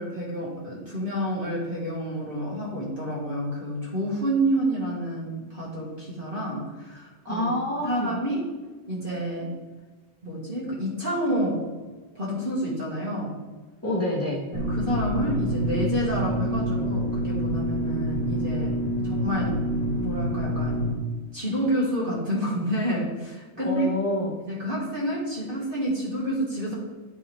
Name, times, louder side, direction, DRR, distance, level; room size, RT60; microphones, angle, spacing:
voice 1, 0.0-7.4 7.8-8.4 8.9-9.5 10.2-11.7 12.1-13.3 14.5-18.7 19.0-19.5 20.0-20.8 21.3-23.8 24.4-26.7, right 1 dB, 25° right, -5 dB, 1.1 m, -29 dB
voice 2, 7.3-8.2 13.8-14.4 19.0-19.2 23.6-24.3, left 1 dB, 5° left, -8 dB, 1.3 m, -27 dB
sound 1, 14.5-20.9, equal, 65° right, 3.0 m, -27 dB
9.5 x 4.6 x 3.4 m, 1.3 s
omnidirectional pair, 3.6 m